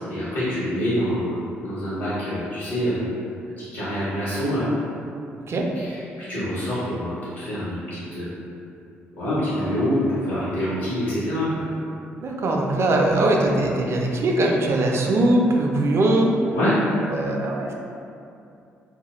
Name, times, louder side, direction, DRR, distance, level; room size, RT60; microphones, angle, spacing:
voice 1, 0.1-3.1 3.6-4.7 6.3-8.3 9.2-11.7 16.5-16.8, equal, 75° left, -11 dB, 0.7 m, -26 dB
voice 2, 5.4-5.7 12.2-16.4 17.1-17.7, right 1 dB, 40° right, 0 dB, 0.4 m, -21 dB
2.2 x 2.1 x 2.9 m, 2.5 s
figure-of-eight pair, 40°, 7 cm